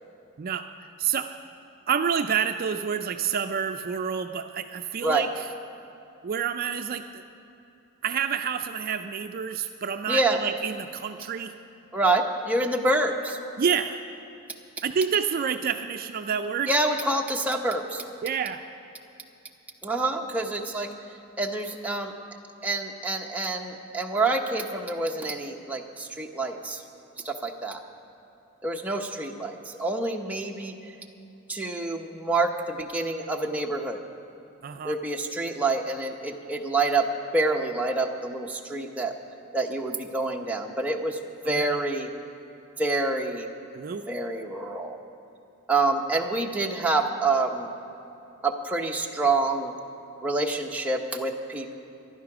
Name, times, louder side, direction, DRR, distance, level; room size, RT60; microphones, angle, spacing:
voice 1, 1.0-1.3 1.9-5.4 6.2-7.2 8.0-11.5 13.6-14.0 14.8-16.7 18.2-18.7 34.6-35.0 41.4-41.8 43.8-44.0, right 7 dB, 45° right, 7 dB, 0.4 m, -28 dB
voice 2, 10.1-10.4 11.9-13.4 16.7-18.0 19.8-20.9 21.4-22.1 22.6-26.8 27.2-27.8 28.6-30.7 31.5-34.0 34.8-37.1 37.3-39.1 39.5-41.2 41.4-42.1 42.8-43.5 44.1-45.0 45.7-47.7 48.4-49.7 50.2-51.7, right 2 dB, 5° right, 1 dB, 0.8 m, -27 dB
14.5 x 11.5 x 6.0 m, 2.9 s
head